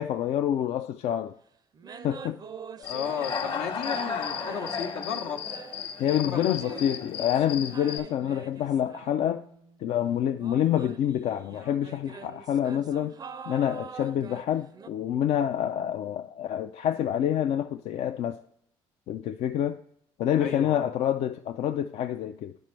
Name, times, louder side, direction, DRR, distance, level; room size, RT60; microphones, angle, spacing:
voice 1, 0.0-1.4 2.0-2.4 6.0-9.4 9.8-13.1 13.5-18.4 19.1-19.8 20.2-22.6, left 10 dB, 65° left, 0.4 m, -27 dB
sound 1, 1.2-1.3 1.7-3.6 3.9-9.8 10.4-14.9, right 6 dB, 35° right, 0.4 m, -45 dB
voice 2, 2.8-5.5 6.2-6.8 20.4-20.9, left 7 dB, 80° left, 0.9 m, -34 dB
Human voice / Cricket, 2.8-8.0, left 6 dB, 50° left, 1.0 m, -34 dB
10.0 x 5.2 x 3.2 m
supercardioid pair, 70°, 12 cm